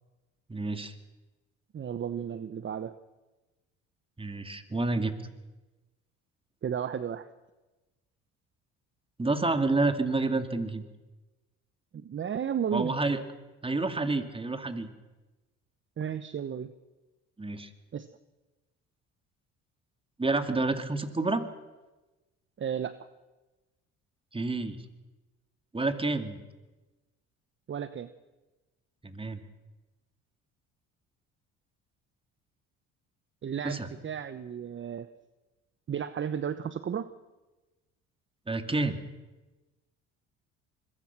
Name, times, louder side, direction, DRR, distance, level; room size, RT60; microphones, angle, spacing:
voice 1, 0.5-0.9 4.2-5.1 9.2-10.8 12.7-13.2 13.6-14.9 17.4-17.7 20.2-21.4 24.3-24.8 25.7-26.4 29.0-29.4 33.6-33.9 38.5-39.0, right 3 dB, 15° right, 8 dB, 2.6 m, -29 dB
voice 2, 1.7-3.0 6.6-7.3 11.9-12.9 16.0-16.7 17.9-18.1 22.6-23.1 27.7-28.1 33.4-35.1 35.9-37.1, right 8 dB, 40° right, 13 dB, 1.0 m, -33 dB
25.0 x 22.5 x 6.1 m, 1.1 s
supercardioid pair, 75°, 32 cm